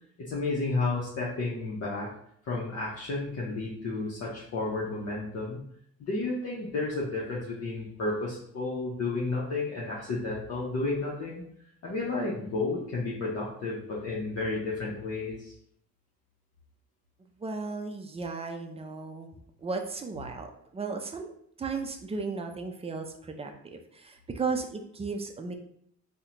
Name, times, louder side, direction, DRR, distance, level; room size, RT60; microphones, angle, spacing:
voice 1, 0.3-2.1 2.4-5.6 6.0-11.4 11.8-15.5, left 3 dB, 55° left, -5 dB, 0.7 m, -32 dB
voice 2, 17.4-19.3 19.6-20.5 20.7-21.3 21.6-25.6, right 4 dB, 20° right, 4 dB, 0.4 m, -35 dB
3.6 x 2.1 x 2.8 m, 0.69 s
cardioid pair, 90°, 30 cm